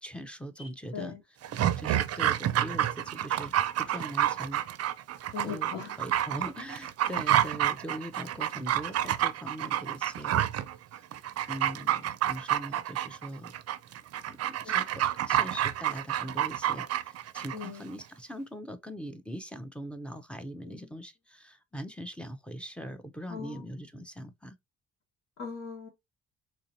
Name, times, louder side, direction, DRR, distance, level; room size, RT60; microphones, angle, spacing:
voice 1, 0.0-1.2 1.5-4.6 5.4-10.5 11.5-13.5 14.3-24.6, equal, 5° left, 0.6 m, -41 dB
Dog, 1.4-17.7 18.0-18.1, right 12 dB, 55° right, 0.5 m, -29 dB
voice 2, 5.3-5.9 14.6-14.8 17.5-17.9 20.6-20.9 23.3-23.7 25.4-25.9, left 6 dB, 70° left, 1.6 m, -40 dB
4.0 x 2.8 x 2.6 m
cardioid pair, 90°, 30 cm